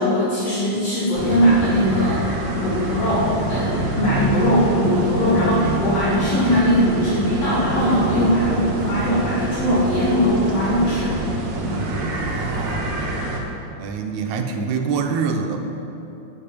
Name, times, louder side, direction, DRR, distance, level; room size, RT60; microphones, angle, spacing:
voice 1, 0.0-2.3 2.5-11.1 11.6-11.8, equal, 60° left, -8 dB, 2.8 m, -20 dB
sound 1, 1.1-13.4, right 2 dB, 70° right, 2.6 m, -26 dB
voice 2, 12.2-12.9 13.8-15.6, right 5 dB, 90° right, 4 dB, 2.2 m, -25 dB
9.1 x 7.7 x 8.5 m, 2.9 s
omnidirectional pair, 3.3 m